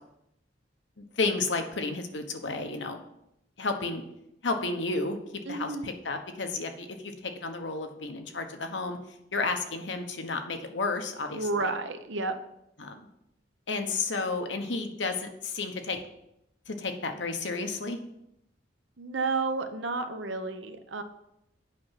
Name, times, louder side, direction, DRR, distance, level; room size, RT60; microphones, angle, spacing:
voice 1, 1.0-3.0 3.6-4.0 4.4-5.2 5.5-9.0 9.3-11.7 12.8-13.1 13.7-16.0 16.7-18.0, left 3 dB, 75° left, 5 dB, 1.1 m, -32 dB
voice 2, 5.5-5.9 11.3-12.3 19.0-21.0, right 3 dB, 80° right, 8 dB, 0.9 m, -31 dB
8.5 x 5.8 x 5.8 m, 0.82 s
head